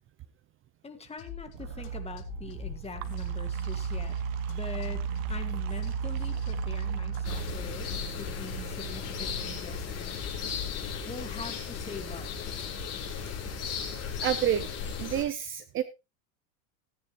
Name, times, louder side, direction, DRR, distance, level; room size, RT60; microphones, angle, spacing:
voice 1, 0.8-4.2 4.5-7.9 8.2-10.2 11.0-12.3, left 4 dB, 15° left, 7 dB, 1.7 m, -43 dB
sound 1, 1.2-11.8, left 10 dB, 65° left, 3.8 m, -45 dB
sound 2, 1.5-10.1, right 7 dB, 65° right, 1.4 m, -35 dB
sound 3, 7.2-15.2, left 6 dB, 35° left, 5.5 m, -36 dB
voice 2, 14.2-14.7 15.0-15.8, right 11 dB, 30° right, 13 dB, 0.7 m, -28 dB
17.0 x 9.7 x 3.0 m, 0.27 s
supercardioid pair, 130°, 42 cm